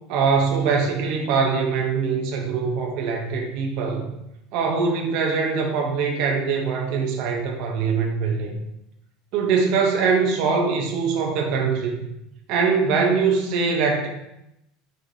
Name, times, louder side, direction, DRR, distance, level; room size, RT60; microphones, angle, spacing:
voice 1, 0.1-4.1 4.5-8.5 9.3-12.1 12.5-14.1, right 5 dB, 45° right, 1 dB, 0.6 m, -22 dB
4.7 x 4.1 x 2.7 m, 0.85 s
cardioid pair, 180°, 0 cm